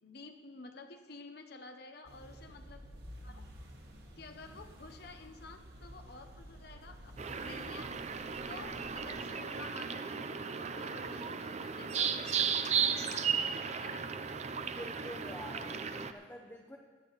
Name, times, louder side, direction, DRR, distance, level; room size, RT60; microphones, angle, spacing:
voice 1, 0.0-2.8 3.2-3.4 4.2-8.2 8.5-10.1 10.5-14.1, left 3 dB, 60° left, 6 dB, 0.9 m, -51 dB
sound 1, 2.0-9.2, equal, 60° right, 1.9 m, -51 dB
sound 2, 7.2-16.1, right 6 dB, 35° right, 0.6 m, -35 dB
Brass instrument, 7.7-14.9, right 5 dB, 75° left, 1.9 m, -56 dB
voice 2, 14.7-16.8, left 1 dB, 10° left, -1 dB, 0.8 m, -47 dB
16.0 x 11.0 x 4.0 m, 1.5 s
head